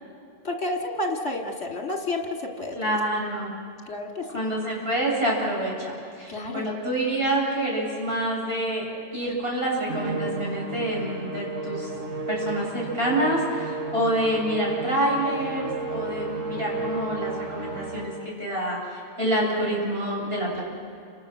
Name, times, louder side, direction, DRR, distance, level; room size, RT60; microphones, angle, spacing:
voice 1, 0.4-2.9 3.9-4.3 6.3-6.7, left 2 dB, 55° left, 1 dB, 3.0 m, -30 dB
voice 2, 2.7-3.5 4.3-8.9 9.1-11.9 12.3-20.6, right 1 dB, 45° right, -4 dB, 8.1 m, -27 dB
Musical instrument, 9.9-18.4, right 3 dB, 65° right, 2.0 m, -33 dB
29.5 x 27.0 x 6.7 m, 2.4 s
omnidirectional pair, 1.4 m